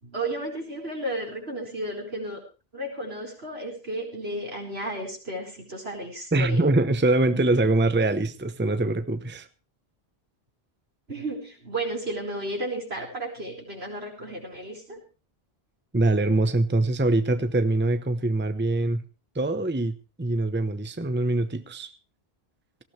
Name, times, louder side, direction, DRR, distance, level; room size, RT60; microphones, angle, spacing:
voice 1, 0.0-2.4 2.7-6.7 11.1-15.0, right 1 dB, 75° right, 4.8 m, -33 dB
voice 2, 6.3-9.5 15.9-19.0 19.3-21.9, right 2 dB, 10° right, 0.8 m, -23 dB
18.5 x 16.0 x 3.3 m
omnidirectional pair, 1.1 m